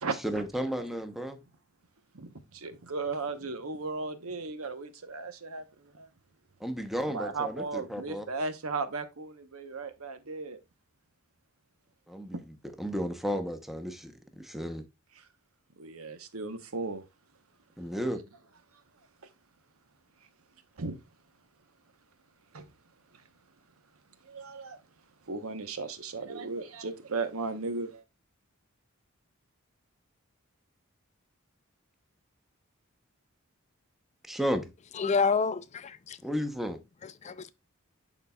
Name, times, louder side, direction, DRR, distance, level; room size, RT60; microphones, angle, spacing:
voice 1, 0.2-1.4 6.6-8.3 12.1-12.4 12.8-14.8 17.8-18.2 34.3-34.7 36.2-36.8, equal, ahead, 0.8 m, -33 dB
voice 2, 2.1-5.6 5.9-6.1 7.1-10.6 12.3-12.4 15.8-17.0 20.8-21.0 22.5-22.7 24.3-24.8 25.3-28.0, right 3 dB, 85° right, 1.0 m, -36 dB
voice 3, 35.0-36.2 37.2-37.5, left 5 dB, 30° left, 0.4 m, -28 dB
11.0 x 4.0 x 2.3 m
head